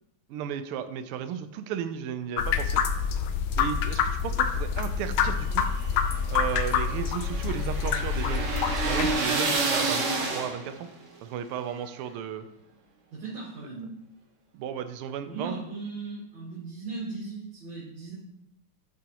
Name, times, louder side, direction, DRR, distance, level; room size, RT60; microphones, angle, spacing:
voice 1, 0.3-2.8 3.6-5.7 6.3-8.5 8.9-10.0 10.3-10.9 11.2-12.5 14.5-15.6, right 8 dB, 85° right, 10 dB, 1.5 m, -34 dB
sound 1, 2.4-9.1, left 6 dB, 75° left, 1.4 m, -27 dB
sound 2, 5.4-10.9, right 3 dB, 45° right, 1.1 m, -29 dB
voice 2, 13.1-13.9 15.2-18.1, right 3 dB, 65° right, -9 dB, 3.0 m, -37 dB
11.5 x 4.9 x 2.9 m, 0.81 s
omnidirectional pair, 2.4 m